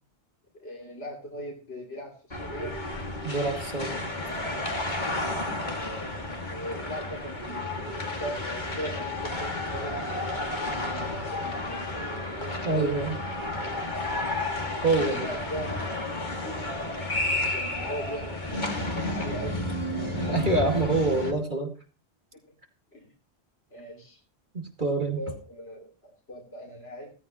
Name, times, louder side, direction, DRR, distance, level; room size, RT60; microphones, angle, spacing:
voice 1, 0.5-2.8 5.7-6.2 6.5-7.7 8.0-13.2 15.1-15.8 16.2-16.9 17.5-19.6 22.9-23.1 23.7-24.2 25.2-27.1, equal, 75° left, -1 dB, 3.6 m, -39 dB
sound 1, 2.3-21.3, left 2 dB, 45° left, 2.6 m, -32 dB
voice 2, 3.2-4.0 12.6-13.2 14.8-15.3 17.4-17.5 20.1-21.7 24.5-25.2, right 3 dB, 50° right, 2 dB, 2.5 m, -26 dB
17.0 x 14.5 x 3.1 m, 0.35 s
omnidirectional pair, 1.1 m